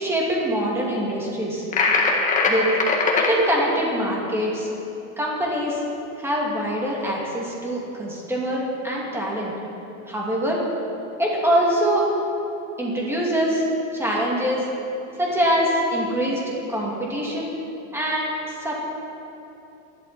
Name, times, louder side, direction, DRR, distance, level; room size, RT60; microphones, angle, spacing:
voice 1, 0.0-1.7 2.5-2.7 3.2-4.7 5.2-5.8 6.2-9.5 10.1-10.7 11.2-12.1 12.8-13.7 13.9-14.6 15.2-17.5 17.9-18.8, equal, 5° right, -4 dB, 2.8 m, -24 dB
sound 1, 1.7-3.3, left 3 dB, 20° left, 1.8 m, -20 dB
24.0 x 11.5 x 4.5 m, 2.9 s
supercardioid pair, 165°, 40 cm